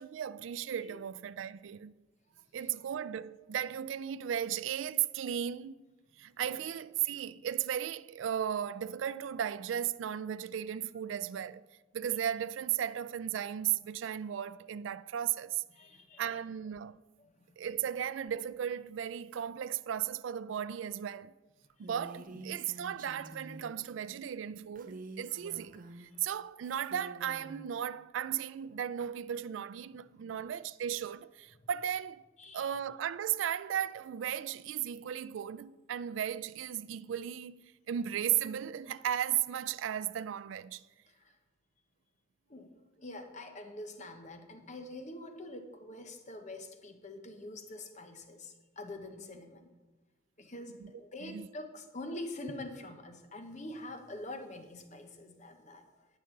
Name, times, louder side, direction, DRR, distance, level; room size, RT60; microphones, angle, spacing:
voice 1, 0.0-1.9 2.5-5.8 6.2-11.7 11.9-15.6 16.2-17.0 17.6-21.3 21.8-32.2 32.5-40.8 50.8-50.9 51.2-51.5, right 10 dB, 75° right, 0.3 m, -35 dB
voice 2, 15.7-16.4 17.2-17.5 21.8-21.9 22.3-22.4 25.3-25.4 30.2-30.4 31.6-31.7 32.4-32.7 41.1-41.3 42.5-49.7 50.4-55.9, left 1 dB, 40° left, 1.1 m, -45 dB
Female speech woman speaking, 21.8-23.7 24.8-26.2 26.6-27.6, right 2 dB, 45° right, 0.8 m, -48 dB
19.0 x 6.6 x 3.9 m
head